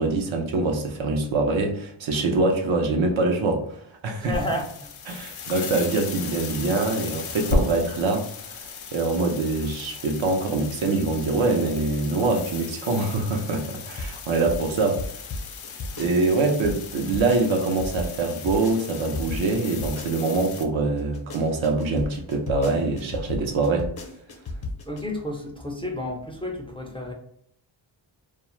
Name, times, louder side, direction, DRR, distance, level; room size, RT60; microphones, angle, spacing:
voice 1, 0.0-4.4 5.1-8.3 8.5-15.0 16.0-23.9, right 3 dB, 75° right, 3 dB, 0.7 m, -24 dB
sound 1, 4.2-20.6, left 4 dB, 85° left, 0.6 m, -35 dB
voice 2, 4.2-4.9 24.9-27.1, equal, 10° left, 1 dB, 0.4 m, -31 dB
sound 2, 13.8-20.5 21.0-25.0, left 2 dB, 50° left, 0.7 m, -34 dB
2.3 x 2.3 x 3.0 m, 0.68 s
cardioid pair, 75°, 48 cm